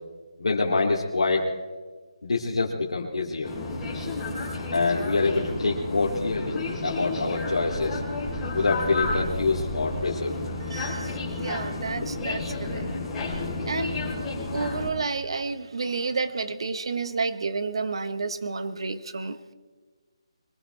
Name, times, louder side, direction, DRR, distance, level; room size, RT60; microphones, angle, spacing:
voice 1, 0.4-1.5 2.2-3.5 4.7-8.0 8.5-10.4, left 3 dB, 85° left, -4 dB, 2.6 m, -25 dB
sound 1, 3.4-14.9, left 2 dB, 10° left, 3.4 m, -31 dB
voice 2, 10.7-11.1 11.3-12.8 13.7-14.0 14.5-19.5, right 4 dB, 60° right, 12 dB, 1.2 m, -30 dB
23.5 x 17.0 x 3.3 m, 1.4 s
hypercardioid pair, 170°, 3 cm